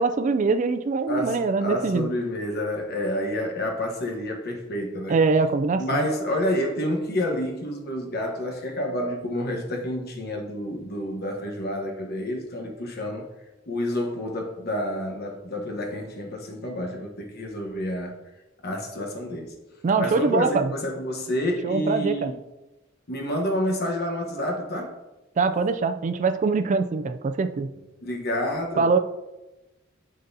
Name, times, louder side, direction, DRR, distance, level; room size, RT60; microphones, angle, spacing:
voice 1, 0.0-2.1 5.1-6.1 19.8-20.7 21.6-22.3 25.4-27.7 28.8-29.0, right 4 dB, 40° right, 0.3 m, -23 dB
voice 2, 1.1-5.2 5.8-13.3 13.7-18.2 18.6-19.5 20.0-22.3 23.1-25.0 28.0-28.9, left 1 dB, 50° left, 1.1 m, -29 dB
11.5 x 3.9 x 2.7 m
head